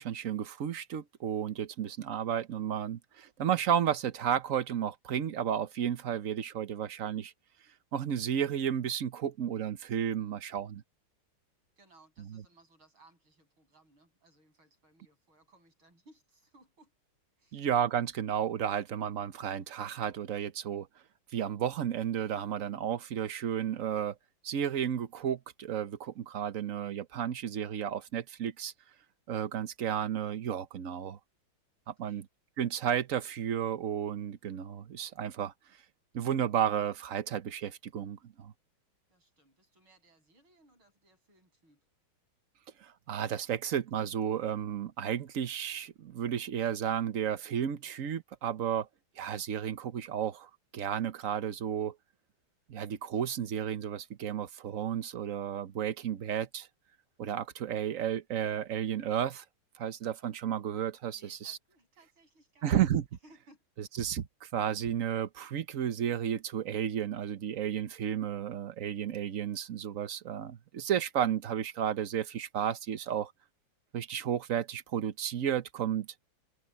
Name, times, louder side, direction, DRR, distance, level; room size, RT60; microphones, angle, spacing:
voice 1, 0.0-7.3 7.9-10.8 12.3-12.4 17.5-20.9 21.3-24.2 24.4-28.7 29.3-31.2 31.9-32.3 32.6-35.5 36.1-38.5 42.8-48.9 49.2-51.9 52.7-56.7 57.2-59.4 59.8-61.6 62.6-63.0 63.8-73.3 73.9-76.1, right 9 dB, 55° right, 1.0 m, -32 dB
voice 2, 11.8-16.9 17.4-17.7 32.0-32.2 39.1-41.8 47.8-47.9 61.1-62.9 63.2-63.6, right 2 dB, 80° right, 9.1 m, -63 dB
omnidirectional pair, 2.2 m